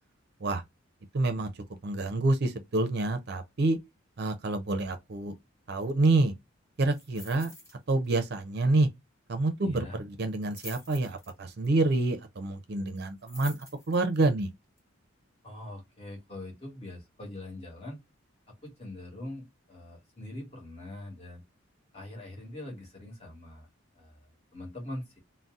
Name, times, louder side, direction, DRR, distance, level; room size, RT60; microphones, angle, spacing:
voice 1, 1.1-1.5 1.8-3.8 4.2-5.3 5.7-6.3 6.8-7.5 7.9-8.9 9.3-13.6 13.9-14.5, right 2 dB, 50° right, 0.5 m, -27 dB
sound 1, 6.9-7.8 8.0-8.3 8.6-8.7 10.2-11.7 12.9-14.2 14.8-14.9, left 1 dB, 15° left, 1.1 m, -48 dB
voice 2, 9.6-10.0 15.4-18.0 18.6-21.4 21.9-23.7 23.9-25.2, left 1 dB, 30° left, 1.2 m, -42 dB
2.6 x 2.1 x 3.4 m
head